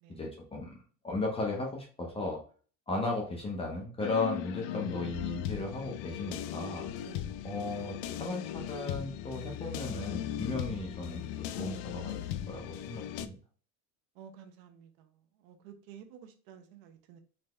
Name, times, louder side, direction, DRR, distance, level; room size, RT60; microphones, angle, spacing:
voice 1, 0.1-0.8 1.0-2.4 2.9-6.9 7.4-11.3 11.6-12.2 12.5-13.4, left 2 dB, 15° left, 0.7 m, -36 dB
sound 1, 4.0-13.3, left 11 dB, 75° left, 0.5 m, -38 dB
voice 2, 14.2-15.1 15.4-17.2, right 8 dB, 75° right, 0.9 m, -52 dB
4.1 x 3.4 x 3.2 m
cardioid pair, 145°, 39 cm